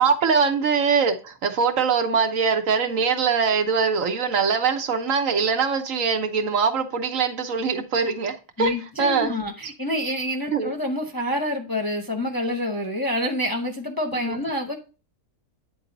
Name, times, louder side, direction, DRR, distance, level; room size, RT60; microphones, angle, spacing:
voice 1, 0.0-9.3 10.5-10.7 14.1-14.4, right 5 dB, 70° right, 1.3 m, -22 dB
voice 2, 8.6-14.8, left 1 dB, 20° left, 0.7 m, -27 dB
9.2 x 4.1 x 3.9 m
omnidirectional pair, 1.5 m